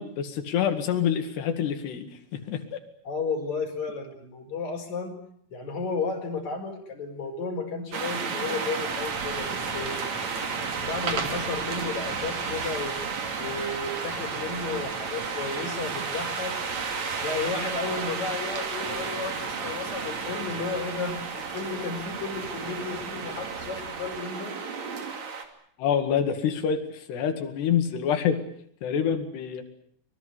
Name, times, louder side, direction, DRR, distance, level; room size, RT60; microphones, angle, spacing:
voice 1, 0.0-2.8 25.8-28.4 28.8-29.6, left 8 dB, 85° left, 7 dB, 4.2 m, -27 dB
voice 2, 3.0-5.1 5.5-10.0 10.8-13.0 13.4-16.6 17.2-24.6, left 4 dB, 45° left, 3 dB, 5.9 m, -33 dB
sound 1, 7.9-25.4, right 5 dB, 45° right, 3.6 m, -32 dB
25.5 x 22.5 x 8.2 m, 0.66 s
omnidirectional pair, 4.7 m